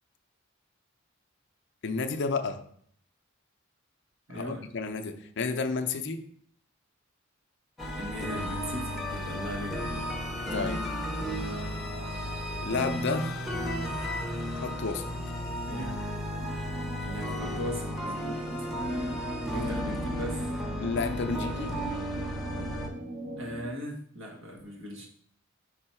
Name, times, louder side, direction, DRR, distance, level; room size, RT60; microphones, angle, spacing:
voice 1, 1.8-2.6 4.3-6.2 10.5-10.8 12.6-13.5 14.6-15.0 20.8-21.8, left 4 dB, 60° left, 7 dB, 0.6 m, -31 dB
voice 2, 4.3-4.6 8.0-10.1 15.7-16.0 17.0-18.7 19.5-20.5 23.4-25.1, equal, 70° right, 0 dB, 1.5 m, -38 dB
sound 1, 7.8-22.9, equal, ahead, 0.9 m, -34 dB
sound 2, 16.3-23.6, equal, 35° right, 0.9 m, -39 dB
5.4 x 4.3 x 4.4 m, 0.65 s
head